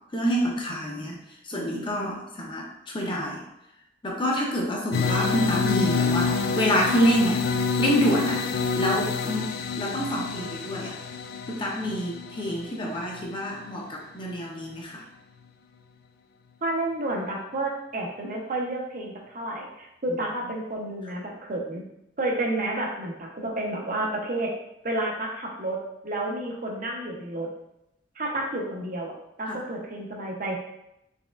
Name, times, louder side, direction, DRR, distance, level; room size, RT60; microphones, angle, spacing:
voice 1, 0.1-1.2 1.5-2.7 2.9-3.4 4.0-7.4 7.8-8.4 8.8-9.5 9.8-11.0 11.5-15.0 29.5-29.6, equal, 30° left, -2 dB, 0.7 m, -27 dB
sound 1, 4.9-13.7, left 5 dB, 60° left, 0.3 m, -28 dB
voice 2, 16.6-21.8 22.2-24.5 24.8-27.5 28.2-30.6, right 2 dB, 45° right, -1 dB, 0.7 m, -30 dB
4.2 x 3.5 x 2.4 m, 0.84 s
head